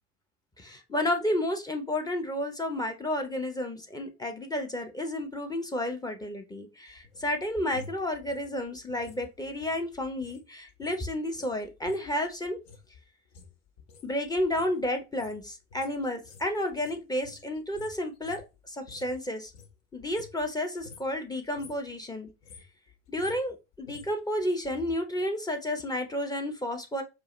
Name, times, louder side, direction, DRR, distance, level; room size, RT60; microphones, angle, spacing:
voice 1, 0.6-12.6 14.0-18.4 18.7-19.5 19.9-22.3 23.1-27.0, left 1 dB, 10° left, 5 dB, 0.7 m, -31 dB
sound 1, 6.9-10.4 10.7-19.2 19.5-20.5 20.8-21.2 21.4-21.9 22.3-24.9 25.2-25.3, left 5 dB, 55° left, 1.0 m, -51 dB
4.6 x 2.5 x 3.0 m, 0.26 s
figure-of-eight pair, 75°, 40 cm